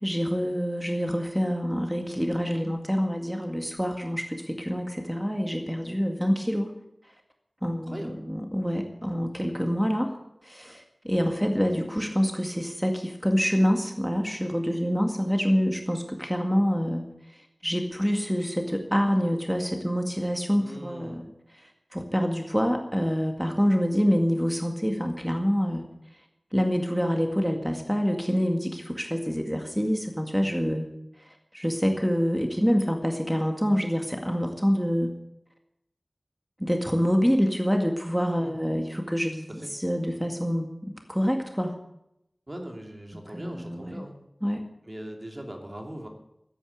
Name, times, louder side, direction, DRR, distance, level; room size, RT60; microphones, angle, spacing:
voice 1, 0.0-6.7 7.6-10.1 10.4-21.3 21.5-25.9 26.5-30.9 31.2-31.3 31.5-35.1 36.6-41.7 43.3-44.0 44.4-44.6, equal, ahead, 3 dB, 2.0 m, -26 dB
voice 2, 20.6-21.2 38.4-38.5 39.6-39.7 42.5-44.2 44.8-46.1, right 1 dB, 40° right, 2 dB, 2.9 m, -40 dB
14.0 x 9.7 x 8.1 m, 0.81 s
wide cardioid pair, 45°, 0 cm